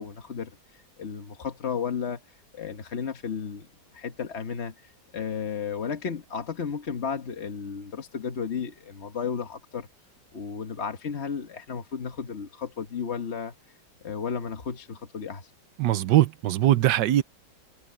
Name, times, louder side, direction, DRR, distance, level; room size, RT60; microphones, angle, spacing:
voice 1, 0.0-2.2 2.5-3.7 3.9-9.9 10.3-13.5 14.0-15.5, left 6 dB, 40° left, 1.2 m, -33 dB
voice 2, 15.8-17.2, right 13 dB, 80° right, 1.4 m, -21 dB
omnidirectional pair, 2.0 m